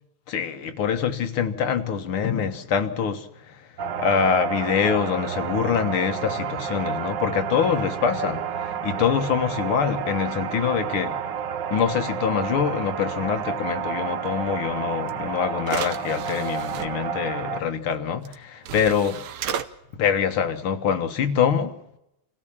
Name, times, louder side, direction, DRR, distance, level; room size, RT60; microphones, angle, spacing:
voice 1, 0.3-3.7 4.0-11.2 11.7-19.2 19.9-21.7, left 7 dB, 75° left, 2.3 m, -25 dB
sound 1, 3.8-17.6, right 7 dB, 60° right, 1.6 m, -30 dB
sound 2, 15.1-15.2 15.6-16.9 18.2-18.3 18.6-19.7, right 8 dB, 85° right, 1.9 m, -33 dB
26.5 x 16.0 x 7.4 m
omnidirectional pair, 2.4 m